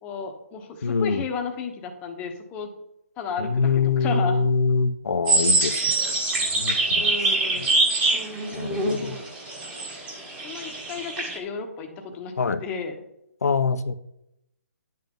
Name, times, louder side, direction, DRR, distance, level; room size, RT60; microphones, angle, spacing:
voice 1, 0.0-2.7 3.2-3.7 4.0-4.4 7.0-7.8 9.0-9.2 10.3-12.3 12.6-12.9, left 5 dB, 15° left, 4 dB, 1.0 m, -33 dB
voice 2, 0.8-1.2 3.4-7.7 8.5-9.2 12.4-12.6 13.4-13.9, left 4 dB, 80° left, 13 dB, 0.8 m, -25 dB
sound 1, 5.3-11.4, right 2 dB, 15° right, 1.5 m, -24 dB
10.5 x 7.4 x 3.7 m, 0.82 s
hypercardioid pair, 160°, 8 cm